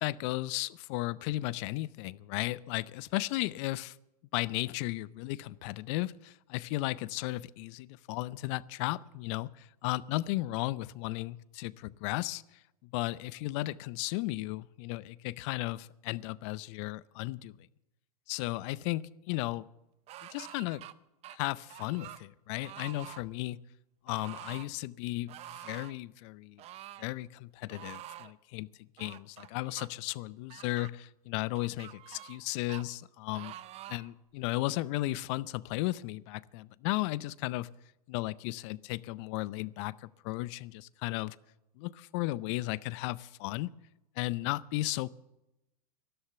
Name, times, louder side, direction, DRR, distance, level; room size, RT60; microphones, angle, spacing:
voice 1, 0.0-3.9 4.3-12.4 12.9-17.5 18.3-19.7 20.3-20.8 21.3-23.6 24.1-26.6 27.0-28.7 29.0-33.6 33.9-37.7 38.1-41.4 41.8-43.7 44.2-45.1, left 18 dB, 50° left, 21 dB, 0.5 m, -35 dB
sound 1, 20.1-20.9 21.2-22.2 22.6-23.2 24.1-24.7 25.3-26.0 26.6-27.1 27.7-28.3 29.0-29.9 30.5-30.9 31.6-32.4 32.7-32.8 33.3-34.1 34.7-34.8, right 13 dB, 35° right, 0.7 m, -47 dB
13.0 x 11.5 x 6.7 m, 0.93 s
hypercardioid pair, 105°, 19 cm